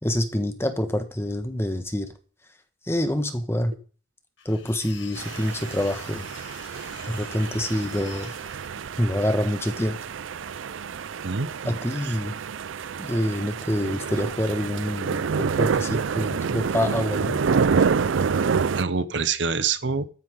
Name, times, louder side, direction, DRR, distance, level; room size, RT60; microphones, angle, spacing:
voice 1, 0.0-2.1 2.9-3.7 4.4-6.3 7.1-8.3 9.0-10.0 11.6-12.3 13.0-15.2 15.6-17.4, left 1 dB, 15° left, 8 dB, 1.3 m, -26 dB
sound 1, 4.4-8.7, left 7 dB, 80° left, 1.9 m, -46 dB
sound 2, 5.2-18.8, right 5 dB, 90° right, 0.5 m, -28 dB
voice 2, 11.2-12.1 18.7-20.1, right 5 dB, 70° right, 13 dB, 0.9 m, -27 dB
14.5 x 9.7 x 3.7 m, 0.40 s
head